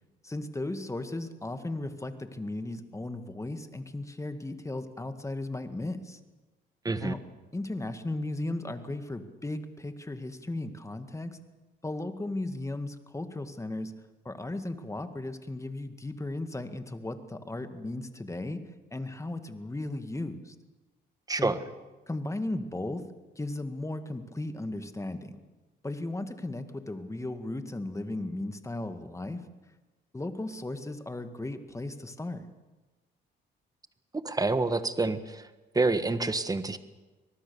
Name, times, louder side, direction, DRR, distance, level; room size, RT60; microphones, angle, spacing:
voice 1, 0.2-6.2 7.0-7.2 7.5-11.4 11.8-13.9 14.3-18.6 18.9-20.6 21.3-21.6 22.1-23.1 23.4-25.4 25.8-29.5 30.1-32.5, left 2 dB, 15° left, 9 dB, 2.0 m, -36 dB
voice 2, 21.3-21.6 34.2-35.5 35.7-36.8, right 3 dB, 20° right, 11 dB, 1.5 m, -27 dB
24.5 x 19.0 x 7.1 m, 1.2 s
cardioid pair, 90°, 20 cm